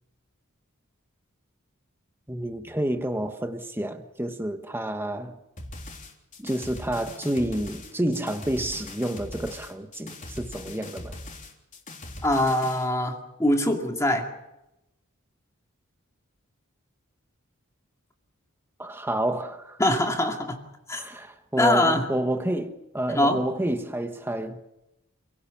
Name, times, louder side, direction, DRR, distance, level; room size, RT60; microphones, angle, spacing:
voice 1, 2.3-5.4 6.4-11.2 18.8-19.8 20.9-24.6, right 1 dB, 10° right, 1.3 m, -29 dB
sound 1, 5.6-12.9, left 1 dB, 40° left, 3.5 m, -41 dB
voice 2, 12.2-14.3 19.8-20.6 20.9-21.0 21.6-22.0 23.1-23.4, left 1 dB, 15° left, 2.4 m, -23 dB
28.5 x 17.5 x 7.2 m
head